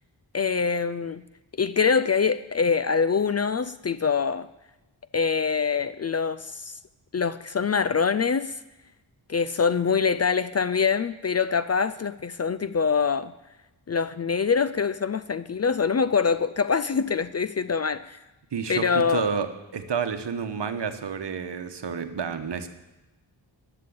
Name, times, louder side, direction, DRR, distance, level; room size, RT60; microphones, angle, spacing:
voice 1, 0.3-1.2 1.6-4.5 5.1-6.8 7.1-8.5 9.3-13.3 13.9-18.2 18.7-19.2, left 5 dB, 35° left, 14 dB, 0.4 m, -24 dB
voice 2, 18.5-19.5 19.7-22.7, right 6 dB, 60° right, 8 dB, 1.1 m, -30 dB
11.5 x 6.8 x 8.5 m, 1.0 s
cardioid pair, 70°, 46 cm